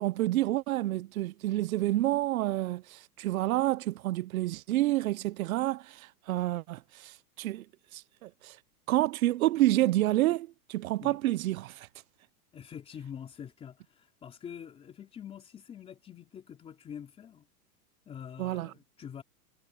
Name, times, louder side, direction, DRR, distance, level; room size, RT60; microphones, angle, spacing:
voice 1, 0.0-7.6 7.9-8.6 8.9-11.9 18.4-18.7, right 16 dB, 65° right, 0.6 m, -29 dB
voice 2, 12.5-17.5 18.1-19.2, left 8 dB, 15° left, 3.6 m, -45 dB
supercardioid pair, 175°, 46 cm